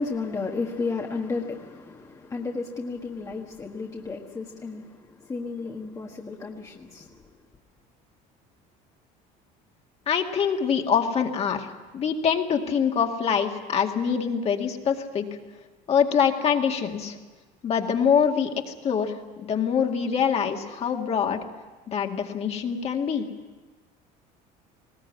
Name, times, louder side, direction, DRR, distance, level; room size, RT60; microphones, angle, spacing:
voice 1, 0.0-7.4, left 4 dB, 20° left, 1.6 m, -33 dB
voice 2, 10.1-15.3 15.9-17.2 17.6-21.4 21.9-23.3, left 7 dB, 40° left, 2.1 m, -24 dB
20.0 x 18.0 x 9.5 m
cardioid pair, 140°, 17 cm